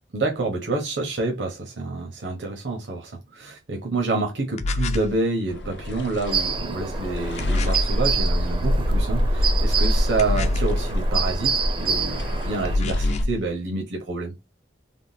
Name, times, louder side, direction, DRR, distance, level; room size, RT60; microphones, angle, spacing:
voice 1, 0.1-14.3, right 3 dB, 75° right, 0.8 m, -28 dB
sound 1, 4.6-5.2 7.4-8.0 10.2-10.9 12.6-13.4, left 2 dB, 40° left, 0.3 m, -25 dB
sound 2, 5.5-13.2, equal, 75° left, 0.7 m, -25 dB
sound 3, 6.3-12.8, right 6 dB, 30° right, 0.4 m, -29 dB
3.5 x 2.1 x 2.6 m
head